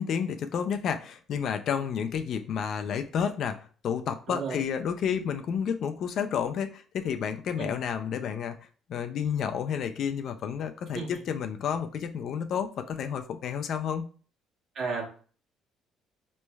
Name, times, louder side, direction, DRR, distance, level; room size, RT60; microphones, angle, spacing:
voice 1, 0.0-8.6 8.9-14.1, left 7 dB, 50° left, 8 dB, 0.3 m, -30 dB
voice 2, 4.3-4.6 7.6-7.7 10.9-11.2 14.7-15.0, right 4 dB, 50° right, -1 dB, 1.2 m, -33 dB
5.2 x 3.1 x 2.3 m, 0.41 s
cardioid pair, 165°, 0 cm